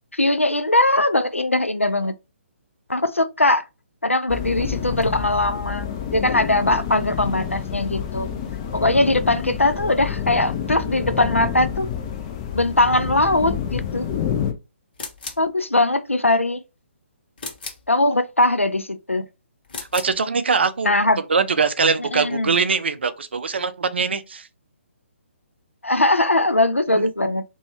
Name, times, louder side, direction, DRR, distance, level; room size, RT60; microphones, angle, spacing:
voice 1, 0.1-2.2 2.9-3.6 4.0-8.3 8.7-11.9 12.5-14.1 15.4-16.6 17.9-19.3 20.8-21.2 22.0-22.5 25.8-27.4, left 2 dB, 90° left, 0.4 m, -20 dB
sound 1, 4.3-14.5, left 8 dB, 25° left, 0.4 m, -28 dB
sound 2, 14.9-15.5 17.4-17.9 19.6-20.2, left 3 dB, 45° left, 0.8 m, -35 dB
voice 2, 19.9-20.9 21.3-24.5 27.0-27.1, right 5 dB, 60° right, 0.4 m, -22 dB
2.9 x 2.3 x 2.8 m
figure-of-eight pair, 135°, 7 cm